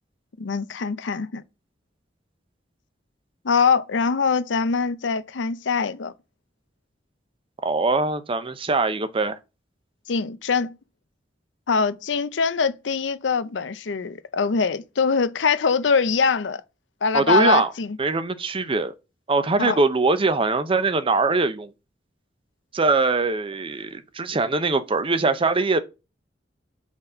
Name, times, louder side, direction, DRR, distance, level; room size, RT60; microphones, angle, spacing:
voice 1, 0.4-1.4 3.4-6.1 10.1-10.7 11.7-16.6 17.0-18.0 19.6-19.8, left 5 dB, 90° left, 0.6 m, -23 dB
voice 2, 7.6-9.4 17.1-17.7 18.0-18.9 19.3-21.7 22.7-25.8, right 3 dB, 30° right, 0.6 m, -22 dB
6.0 x 4.1 x 5.4 m
head